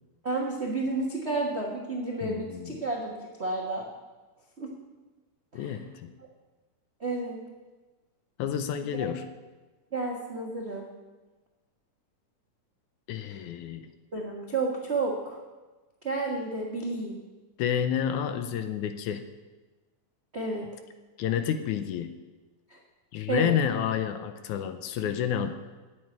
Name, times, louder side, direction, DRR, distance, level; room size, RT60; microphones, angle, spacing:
voice 1, 0.2-3.8 4.6-4.7 5.5-5.7 7.0-7.4 9.9-10.9 13.2-13.4 14.1-15.4 16.0-17.2 20.3-20.7 22.7-22.8 23.3-23.5, right 3 dB, 65° right, -2 dB, 0.6 m, -31 dB
voice 2, 2.2-2.8 5.5-6.1 8.4-9.3 13.1-13.9 17.6-19.2 21.2-22.1 23.1-25.5, left 9 dB, 75° left, 9 dB, 2.1 m, -29 dB
9.0 x 8.4 x 9.5 m, 1.2 s
omnidirectional pair, 3.7 m